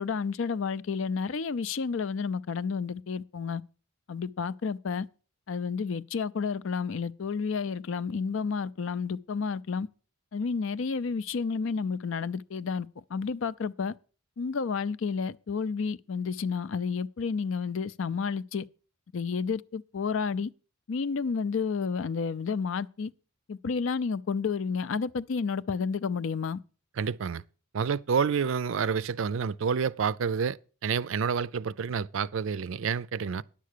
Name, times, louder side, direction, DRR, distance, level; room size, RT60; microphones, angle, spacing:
voice 1, 0.0-3.6 4.1-5.1 5.5-9.9 10.3-13.9 14.4-18.6 19.1-20.5 20.9-23.1 23.5-26.6, left 5 dB, 65° left, 0.5 m, -31 dB
voice 2, 27.0-27.4 27.7-33.4, right 6 dB, 65° right, 0.4 m, -29 dB
10.5 x 7.5 x 6.6 m
head